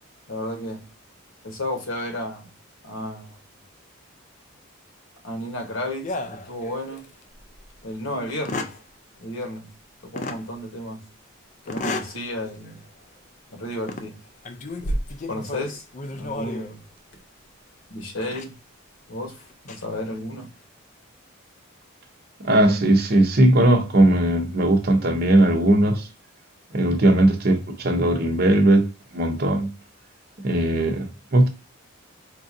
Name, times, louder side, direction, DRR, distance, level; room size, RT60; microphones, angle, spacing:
voice 1, 0.3-0.8 1.4-2.5 2.8-3.4 5.2-7.0 7.8-8.7 9.2-9.7 10.0-11.0 11.7-12.8 13.5-14.2 15.3-16.8 17.9-18.5 19.1-20.5, left 1 dB, 65° left, 1.1 m, -32 dB
sound 1, 6.0-7.1 7.5-7.6 8.3-8.8 10.2-10.4 11.7-12.2 12.6-12.8 13.7-14.1 14.5-16.8 18.2-18.5 19.4-19.8, left 2 dB, 35° left, 0.4 m, -32 dB
voice 2, 22.4-26.1 26.7-29.7 30.4-31.5, right 1 dB, 45° right, 0.7 m, -19 dB
4.5 x 2.5 x 2.5 m
head